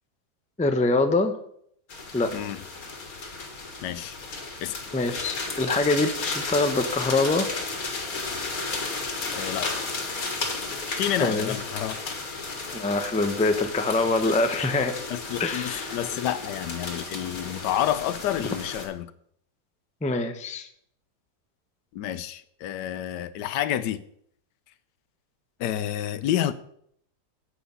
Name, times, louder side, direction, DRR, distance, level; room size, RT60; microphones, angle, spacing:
voice 1, 0.6-1.3 2.1-2.3 4.9-7.5 11.2-11.5 12.7-14.9 15.4-16.0 20.0-20.7, left 2 dB, 10° left, 7 dB, 0.3 m, -24 dB
sound 1, 1.9-18.9, left 3 dB, 60° left, 2.2 m, -33 dB
voice 2, 3.8-4.2 4.6-4.8 9.3-9.9 11.0-12.2 15.1-19.1 21.9-24.0 25.6-26.5, left 11 dB, 85° left, 14 dB, 1.3 m, -29 dB
9.0 x 8.2 x 5.5 m, 0.69 s
omnidirectional pair, 1.8 m